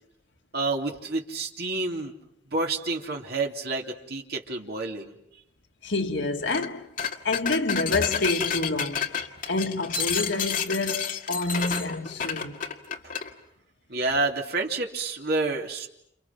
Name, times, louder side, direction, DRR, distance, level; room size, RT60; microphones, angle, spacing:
voice 1, 0.5-2.1 2.5-5.1 13.9-15.9, right 3 dB, 60° right, 3.0 m, -29 dB
voice 2, 5.8-6.9 7.2-12.6, left 2 dB, 85° left, 1.9 m, -28 dB
sound 1, 6.5-6.7 7.0-13.3, left 7 dB, 50° left, 2.0 m, -30 dB
30.0 x 29.5 x 5.9 m
head